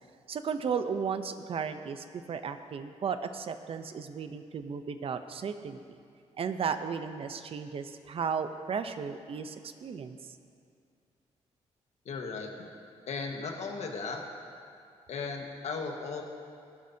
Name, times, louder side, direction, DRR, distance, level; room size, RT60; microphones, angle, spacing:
voice 1, 0.3-5.8 6.4-9.6 9.8-10.2, right 6 dB, 50° right, 9 dB, 0.7 m, -34 dB
voice 2, 12.0-12.7 13.1-14.2 15.1-16.2, left 4 dB, 65° left, 2 dB, 1.5 m, -36 dB
19.5 x 11.5 x 2.8 m, 2.3 s
cardioid pair, 115°, 12 cm